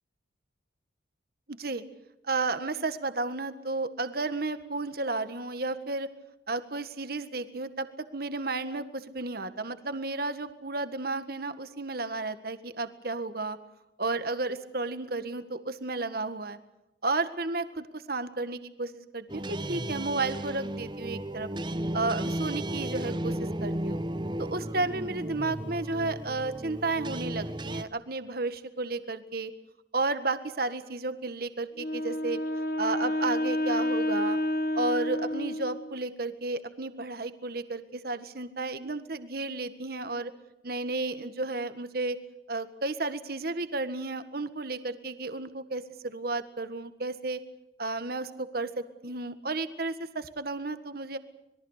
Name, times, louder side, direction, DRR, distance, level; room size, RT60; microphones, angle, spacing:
voice 1, 1.5-1.8 2.2-6.1 6.5-13.6 14.0-16.6 17.0-21.5 21.9-24.0 24.4-29.5 29.9-32.4 32.8-34.4 34.7-40.3 40.6-42.2 42.5-47.4 47.8-51.2, right 3 dB, 55° right, 11 dB, 1.7 m, -32 dB
sound 1, 19.3-27.8, right 1 dB, 25° right, 1.0 m, -34 dB
Wind instrument woodwind instrument, 31.8-36.0, left 1 dB, 50° left, 1.4 m, -29 dB
26.5 x 22.0 x 6.7 m, 0.93 s
head